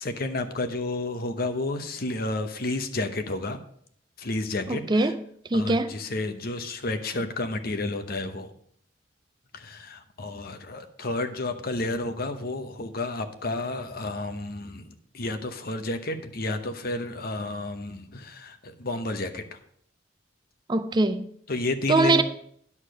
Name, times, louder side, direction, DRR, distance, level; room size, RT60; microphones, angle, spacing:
voice 1, 0.0-3.6 4.2-5.1 5.5-8.5 9.5-19.6 21.5-22.2, left 2 dB, 50° left, 0.9 m, -31 dB
voice 2, 4.7-5.2 5.5-5.9 20.7-21.3 21.9-22.2, right 2 dB, 25° right, 0.4 m, -22 dB
9.8 x 6.6 x 5.2 m
head